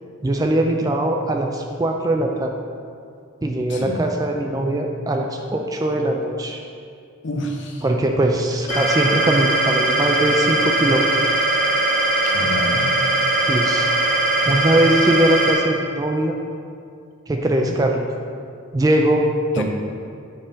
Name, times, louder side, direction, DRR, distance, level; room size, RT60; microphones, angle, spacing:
voice 1, 0.2-2.5 3.4-6.6 7.8-11.1 13.5-13.9 14.4-16.3 17.3-18.1 18.7-19.2 19.5-19.6, right 1 dB, 15° right, 2 dB, 0.3 m, -21 dB
voice 2, 3.7-4.1 7.2-7.8 12.2-13.0 17.6-17.7 19.5-19.6, left 1 dB, 55° left, 2 dB, 0.7 m, -28 dB
sound 1, 8.7-15.5, right 2 dB, 10° left, 1.2 m, -20 dB
5.4 x 4.2 x 5.1 m, 2.4 s
head